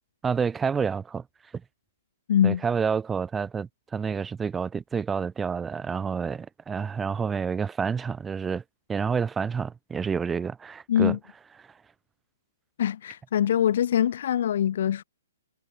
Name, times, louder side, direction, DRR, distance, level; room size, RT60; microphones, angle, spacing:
voice 1, 0.2-1.2 1.5-1.6 2.4-8.6 8.9-11.2, right 6 dB, 10° right, 7.5 m, -29 dB
voice 2, 2.3-2.6 10.9-11.2 12.8-15.0, left 10 dB, 55° left, 2.1 m, -23 dB
figure-of-eight pair, 125°, 0 cm